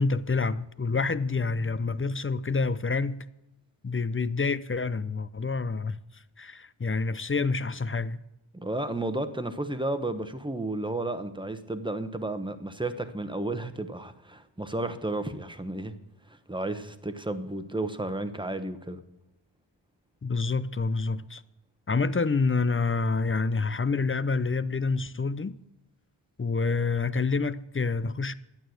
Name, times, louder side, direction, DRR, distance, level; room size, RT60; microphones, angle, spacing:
voice 1, 0.0-3.2 3.8-6.0 6.4-8.2 20.2-21.4 21.9-25.6 26.4-28.3, left 4 dB, 25° left, 0.5 m, -27 dB
voice 2, 8.5-15.9 16.5-19.0, right 2 dB, 10° right, 1.0 m, -32 dB
12.0 x 8.9 x 6.3 m
wide cardioid pair, 45°, 49 cm